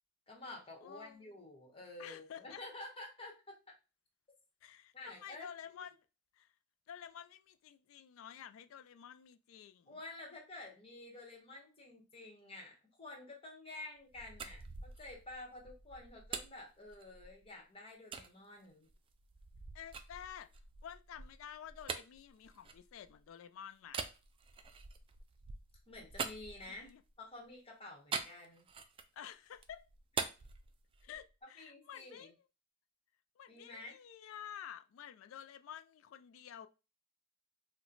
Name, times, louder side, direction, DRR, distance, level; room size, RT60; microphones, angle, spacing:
voice 1, 0.3-3.3 4.9-5.5 9.9-18.9 25.9-26.9 27.2-28.6 31.6-32.3 33.5-33.9, left 2 dB, 30° left, 1.1 m, -50 dB
voice 2, 0.8-1.3 2.0-2.6 4.6-6.1 6.3-6.5 6.9-10.0 19.7-20.5 20.8-24.1 26.7-27.0 29.1-29.9 31.0-32.3 33.4-36.7, left 9 dB, 75° left, 0.3 m, -51 dB
sound 1, 14.0-17.5 18.1-18.3 18.9-23.3 23.9-27.1 28.1-29.2 29.5-31.3, right 5 dB, 25° right, 0.3 m, -45 dB
3.0 x 2.1 x 3.8 m
head